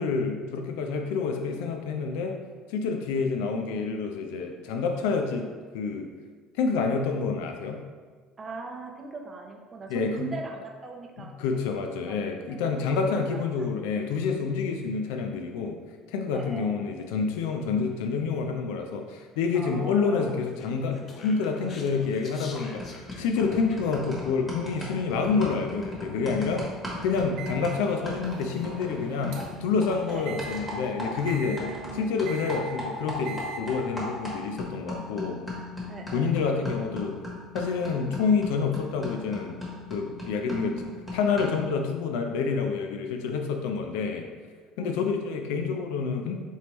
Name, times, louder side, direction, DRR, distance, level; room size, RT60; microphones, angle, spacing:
voice 1, 0.0-2.4 2.7-6.1 6.5-7.8 9.9-10.3 11.2-15.8 16.1-26.7 27.0-31.6 31.9-35.4 36.1-37.2 37.5-39.6 39.9-40.8 41.1-44.3 44.8-46.4, left 5 dB, 90° left, 4 dB, 0.4 m, -28 dB
voice 2, 8.4-12.6 12.9-13.1 13.6-13.7 16.3-16.7 19.5-20.4 27.4-28.1 30.1-30.4 31.5-32.2 35.9-36.3 40.4-41.0 44.8-45.4, right 3 dB, 25° right, 2 dB, 0.6 m, -40 dB
Speech, 20.6-24.0, left 3 dB, 40° left, 0.6 m, -45 dB
sound 1, 22.3-22.5 22.8-31.9 32.2-41.7, left 1 dB, 5° left, 1.2 m, -38 dB
Microwave oven, 27.4-29.7 30.3-30.6 31.3-31.6 32.3-32.6 33.3-33.6, right 5 dB, 75° right, 0.7 m, -41 dB
4.4 x 3.4 x 3.0 m, 1.5 s
cardioid pair, 125°, 0 cm